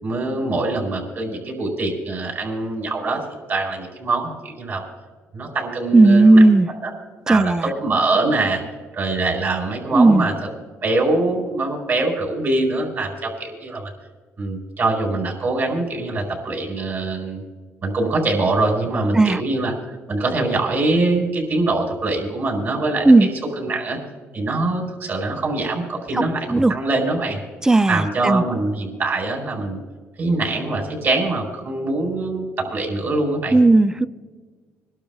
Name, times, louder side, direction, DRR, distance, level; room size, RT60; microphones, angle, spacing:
voice 1, 0.0-3.2 3.5-4.8 5.3-6.4 6.8-6.9 7.3-8.6 8.9-10.3 10.8-13.9 14.4-17.4 17.8-19.7 20.1-23.3 23.5-24.0 24.3-27.4 27.9-29.8 30.2-33.5, right 2 dB, 50° right, 4.9 m, -23 dB
voice 2, 5.9-6.7 7.3-7.7 9.9-10.3 19.1-19.4 23.0-23.3 26.5-26.7 27.6-28.4 33.5-34.1, right 2 dB, 10° right, 0.3 m, -14 dB
27.5 x 12.0 x 2.4 m
cardioid pair, 100°, 5 cm